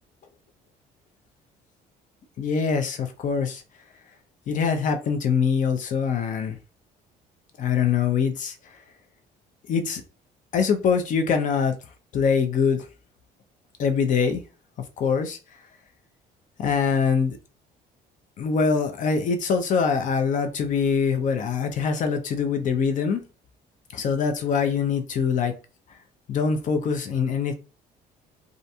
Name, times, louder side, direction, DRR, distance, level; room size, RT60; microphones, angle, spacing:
voice 1, 2.4-3.6 4.5-6.6 7.6-8.6 9.7-10.0 10.5-11.7 12.1-12.9 13.8-14.4 15.0-15.4 16.6-17.4 18.4-23.2 23.9-25.5 26.3-27.5, left 6 dB, 50° left, 0.5 m, -23 dB
2.7 x 2.5 x 2.2 m
cardioid pair, 110°, 17 cm